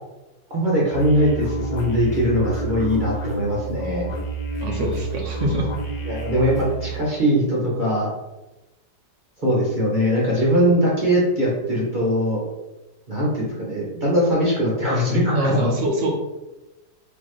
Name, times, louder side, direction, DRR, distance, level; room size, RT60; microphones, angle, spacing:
voice 1, 0.5-4.1 6.0-8.1 9.4-12.5 13.1-15.7, equal, 35° right, -5 dB, 0.8 m, -21 dB
sound 1, 0.9-7.0, right 2 dB, 80° left, 1.4 m, -29 dB
voice 2, 4.6-5.7 15.3-16.1, right 1 dB, 70° right, 0 dB, 0.7 m, -24 dB
4.1 x 3.0 x 3.1 m, 1.0 s
omnidirectional pair, 1.9 m